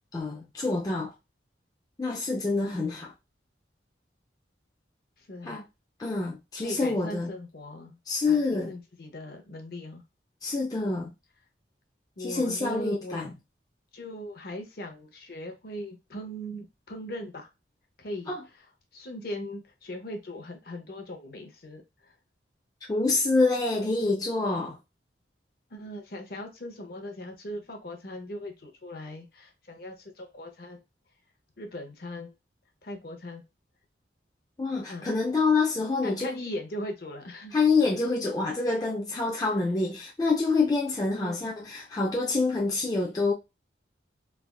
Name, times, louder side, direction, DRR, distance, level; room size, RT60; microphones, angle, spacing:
voice 1, 0.1-1.1 2.0-3.1 5.4-5.6 6.0-7.3 8.1-8.7 10.4-11.1 12.2-13.3 18.3-18.4 22.9-24.8 34.6-36.2 37.5-43.3, left 3 dB, 20° left, 0.3 m, -26 dB
voice 2, 5.2-5.6 6.6-8.0 8.2-10.0 12.2-13.2 13.9-17.5 18.0-22.2 25.7-30.8 31.6-32.3 32.8-33.4 34.9-35.1 36.0-37.6 41.1-41.5, left 1 dB, 55° left, 0.7 m, -39 dB
3.3 x 2.3 x 2.3 m
head